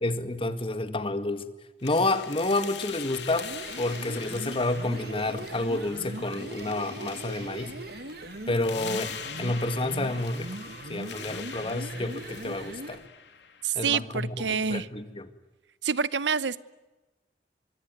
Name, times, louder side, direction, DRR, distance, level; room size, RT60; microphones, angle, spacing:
voice 1, 0.0-1.5 1.8-7.7 8.5-10.5 10.9-13.0 13.8-15.3, left 2 dB, 30° left, 10 dB, 1.9 m, -29 dB
sound 1, 1.8-13.8, left 8 dB, 85° left, 3.0 m, -43 dB
sound 2, 3.3-13.1, right 2 dB, 60° right, 1.6 m, -40 dB
voice 2, 13.6-14.9 15.8-16.6, right 6 dB, 90° right, 18 dB, 0.9 m, -27 dB
24.5 x 24.0 x 9.3 m, 1.1 s
head